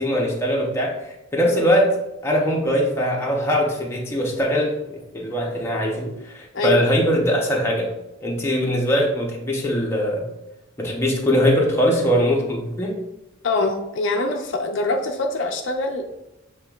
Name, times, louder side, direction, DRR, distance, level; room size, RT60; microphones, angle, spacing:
voice 1, 0.0-1.9 2.2-7.9 8.2-10.2 10.8-13.0, equal, 15° left, -2 dB, 0.8 m, -21 dB
voice 2, 13.4-16.1, left 2 dB, 65° left, 4 dB, 0.4 m, -24 dB
7.4 x 3.0 x 2.4 m, 0.93 s
head